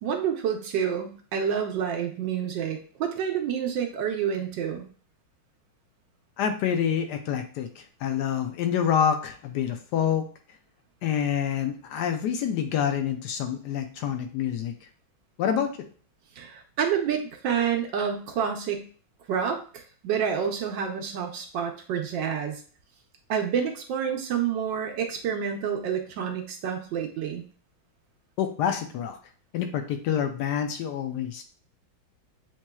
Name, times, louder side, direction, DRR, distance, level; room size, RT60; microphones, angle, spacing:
voice 1, 0.0-4.9 16.4-18.9 19.3-22.6 23.3-27.4, right 7 dB, 70° right, 4 dB, 1.2 m, -28 dB
voice 2, 6.4-10.3 11.0-14.7 15.4-15.7 28.4-29.2 29.5-31.4, left 8 dB, 80° left, 6 dB, 0.9 m, -27 dB
7.2 x 3.0 x 2.2 m, 0.42 s
omnidirectional pair, 2.3 m